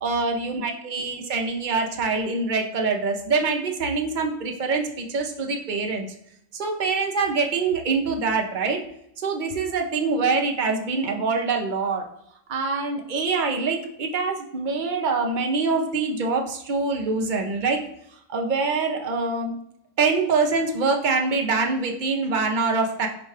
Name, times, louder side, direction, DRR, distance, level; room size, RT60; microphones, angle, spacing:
voice 1, 0.0-6.1 6.5-8.8 9.2-12.1 12.5-17.8 18.3-19.5 20.0-23.1, right 4 dB, 55° right, 2 dB, 0.6 m, -24 dB
5.0 x 2.2 x 4.8 m, 0.75 s
omnidirectional pair, 1.4 m